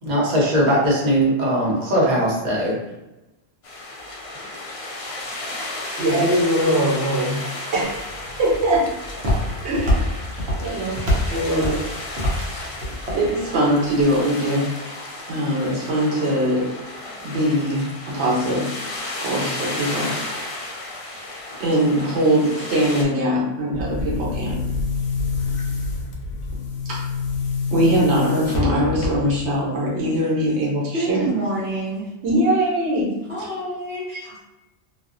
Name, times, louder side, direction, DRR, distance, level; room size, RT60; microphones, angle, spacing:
voice 1, 0.0-2.7, equal, 45° right, -5 dB, 0.9 m, -19 dB
sound 1, 3.6-23.0, left 2 dB, 50° left, 0.4 m, -33 dB
voice 2, 6.0-8.1 8.4-9.0 9.6-10.2 10.6-11.8 13.1-14.7 15.2-16.7 17.2-18.8 19.2-20.1 21.6-24.6 26.9-27.0 27.7-31.3 32.2-33.1 33.4-33.5 34.1-34.2, equal, 90° right, -6 dB, 1.2 m, -21 dB
Walk footsteps, 7.8-14.0, left 1 dB, 70° right, 1.0 m, -26 dB
Boom, 23.7-29.5, left 4 dB, 80° left, 0.8 m, -26 dB
voice 3, 30.9-32.1 33.3-34.4, right 2 dB, 10° right, -10 dB, 1.0 m, -27 dB
2.5 x 2.4 x 2.4 m, 0.99 s
omnidirectional pair, 1.1 m